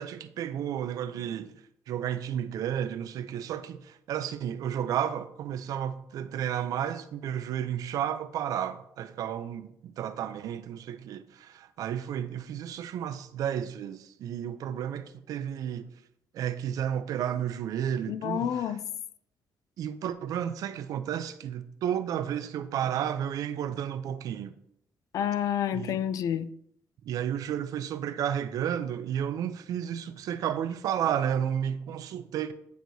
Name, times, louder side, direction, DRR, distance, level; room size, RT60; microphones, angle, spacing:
voice 1, 0.0-1.5 1.9-15.9 16.3-18.7 19.8-24.5 25.7-26.0 27.0-32.5, right 9 dB, 75° right, 0.5 m, -32 dB
voice 2, 18.1-18.8 25.1-26.5, left 9 dB, 70° left, 0.4 m, -29 dB
9.1 x 4.6 x 2.7 m
cardioid pair, 125°, 6 cm